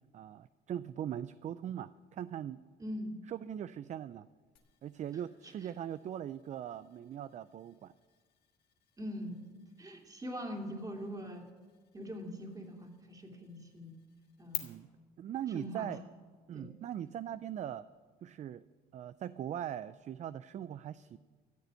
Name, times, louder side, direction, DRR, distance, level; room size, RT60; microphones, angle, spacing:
voice 1, 0.1-2.6 3.3-4.3 4.8-7.9 14.6-14.9 15.2-16.0 16.5-17.8 18.2-18.6 18.9-21.2, right 10 dB, 45° right, 15 dB, 0.4 m, -40 dB
voice 2, 2.8-3.2 5.4-5.7 9.0-9.4 9.8-11.4 11.9-14.0 14.4-14.7 15.5-15.9 16.5-16.7, equal, 20° right, 2 dB, 2.7 m, -42 dB
sound 1, 4.6-14.6, left 14 dB, 80° left, 1.5 m, -52 dB
14.0 x 6.8 x 9.1 m, 1.5 s
cardioid pair, 90°, 17 cm